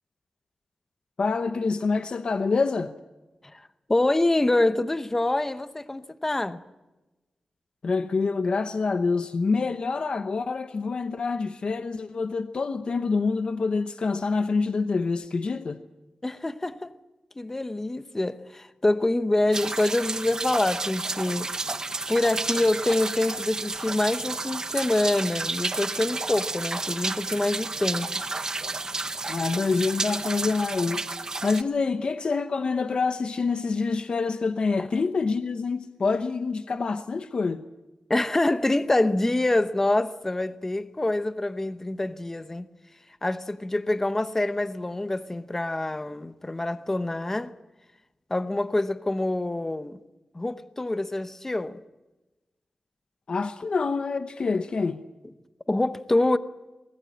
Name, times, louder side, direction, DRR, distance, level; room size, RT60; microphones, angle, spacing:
voice 1, 1.2-2.9 7.8-15.8 29.3-31.0 31.4-37.6 53.3-55.0, left 4 dB, 50° left, 0.8 m, -26 dB
voice 2, 3.4-6.6 16.2-16.9 17.4-21.5 22.1-28.1 34.8-35.0 38.1-42.7 43.2-47.5 48.3-50.0 50.3-51.8 55.7-56.4, left 2 dB, 15° left, 0.8 m, -26 dB
sound 1, 19.5-31.6, right 3 dB, 30° right, 0.9 m, -31 dB
23.5 x 19.5 x 8.6 m
wide cardioid pair, 175°, 2 cm